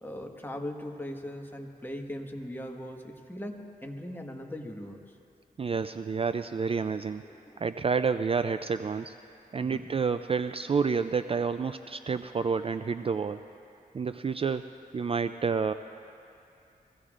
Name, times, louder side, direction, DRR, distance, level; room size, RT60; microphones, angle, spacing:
voice 1, 0.0-5.0 7.2-7.6 9.6-9.9, left 1 dB, 15° left, 2 dB, 1.4 m, -39 dB
voice 2, 5.6-7.2 7.6-9.2 9.5-13.4 13.9-14.7 14.9-15.7, right 5 dB, 35° right, 10 dB, 0.4 m, -29 dB
23.0 x 16.0 x 2.5 m, 2.5 s
cardioid pair, 60°, 16 cm